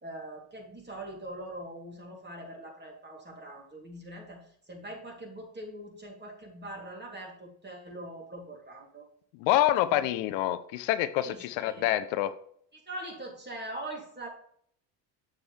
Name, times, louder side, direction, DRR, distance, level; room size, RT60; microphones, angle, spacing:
voice 1, 0.0-4.4 4.7-9.0 9.8-10.1 11.2-11.8 12.9-14.3, right 1 dB, 25° right, 0 dB, 3.2 m, -42 dB
voice 2, 9.4-12.3, left 13 dB, 80° left, 13 dB, 0.7 m, -27 dB
7.8 x 7.1 x 3.4 m, 0.65 s
supercardioid pair, 80°, 45 cm